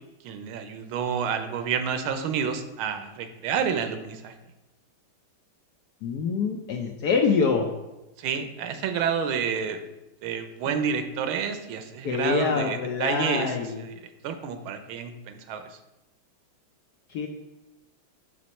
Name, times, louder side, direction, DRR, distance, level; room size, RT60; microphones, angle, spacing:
voice 1, 0.2-4.3 8.2-9.8 10.2-15.8, right 7 dB, 85° right, 8 dB, 1.5 m, -29 dB
voice 2, 6.0-7.7 12.0-13.8 17.1-17.3, left 5 dB, 70° left, 2 dB, 0.9 m, -25 dB
6.1 x 5.0 x 4.2 m, 0.99 s
omnidirectional pair, 2.3 m